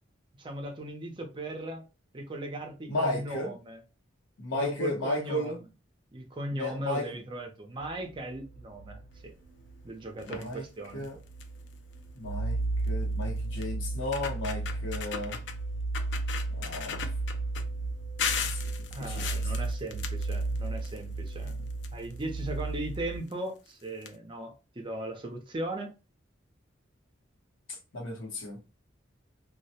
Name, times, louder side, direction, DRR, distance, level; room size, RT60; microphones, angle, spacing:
voice 1, 0.4-1.8 2.1-3.8 4.6-5.6 6.1-9.3 9.8-11.1 18.9-25.9, right 1 dB, 25° right, 0.5 m, -38 dB
voice 2, 2.9-3.5 4.4-5.6 6.5-7.2 10.2-10.6 10.9-11.2 12.1-12.6 12.9-15.4 16.5-17.0 18.3-19.4 27.7-28.6, left 1 dB, 85° left, 0.9 m, -34 dB
sound 1, 7.8-9.9 10.4-10.5 11.0-23.2, right 3 dB, 85° right, 0.4 m, -34 dB
sound 2, 10.2-10.5 11.0-11.1 11.4-11.7 12.9-13.0 13.6-13.7 14.0-15.6 15.9-17.6 18.2-21.0 21.3-22.4 23.3-23.4 23.7-23.8 24.0-24.1, left 7 dB, 65° left, 0.4 m, -36 dB
2.2 x 2.1 x 2.8 m
head